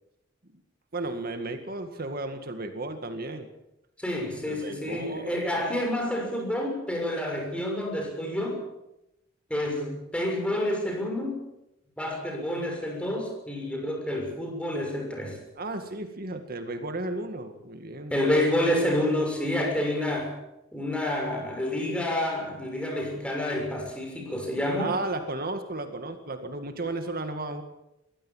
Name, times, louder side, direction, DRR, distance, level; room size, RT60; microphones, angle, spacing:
voice 1, 0.9-3.5 4.5-5.5 15.6-18.2 24.8-27.6, right 2 dB, 50° right, 7 dB, 2.0 m, -34 dB
voice 2, 4.0-8.6 9.5-11.4 12.0-15.4 18.1-20.4 20.7-24.9, left 1 dB, 5° left, 2 dB, 6.4 m, -28 dB
22.5 x 16.5 x 7.4 m, 0.87 s
head